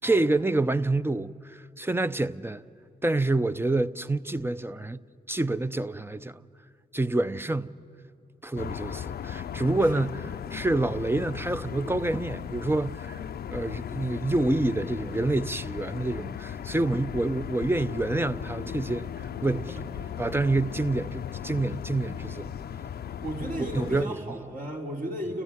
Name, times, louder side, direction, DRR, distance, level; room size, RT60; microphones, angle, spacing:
voice 1, 0.0-2.6 3.0-5.0 5.3-6.4 6.9-7.7 8.4-10.1 10.5-13.2 13.5-19.8 20.2-22.5 23.6-24.1, right 2 dB, 15° right, 0.7 m, -27 dB
sound 1, 8.6-24.1, left 9 dB, 75° left, 0.6 m, -37 dB
voice 2, 23.2-25.4, right 1 dB, 55° right, 4.0 m, -35 dB
30.0 x 14.0 x 9.5 m
supercardioid pair, 45°, 17 cm